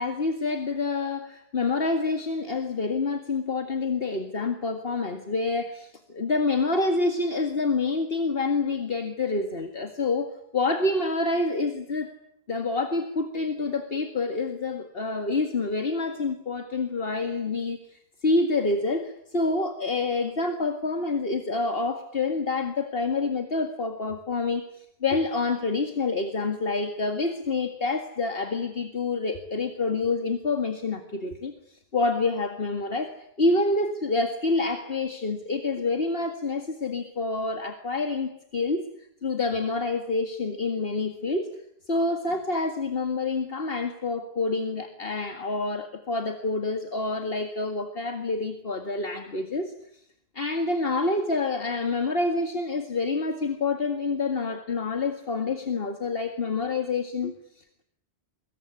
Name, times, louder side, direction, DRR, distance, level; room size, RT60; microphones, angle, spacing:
voice 1, 0.0-12.1 12.5-33.1 33.4-38.9 39.2-41.5 41.9-49.7 50.4-57.8, left 3 dB, 65° left, 6 dB, 2.2 m, -27 dB
24.5 x 22.5 x 9.9 m, 0.73 s
omnidirectional pair, 1.0 m